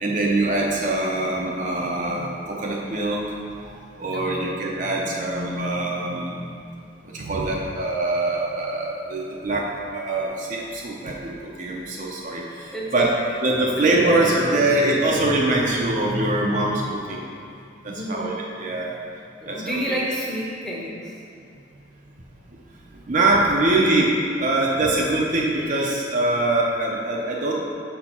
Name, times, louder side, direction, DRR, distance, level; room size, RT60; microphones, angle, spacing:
voice 1, 0.0-3.2 3.6-13.2 13.4-17.3 17.8-18.3 18.6-18.9 19.5-19.9 22.7-24.1 24.4-27.6, right 2 dB, 40° right, -3 dB, 0.6 m, -23 dB
voice 2, 4.1-4.6 12.7-13.2 13.6-14.3 17.9-18.4 19.4-21.1, equal, 5° left, -5 dB, 0.8 m, -30 dB
6.2 x 4.4 x 4.3 m, 2.4 s
head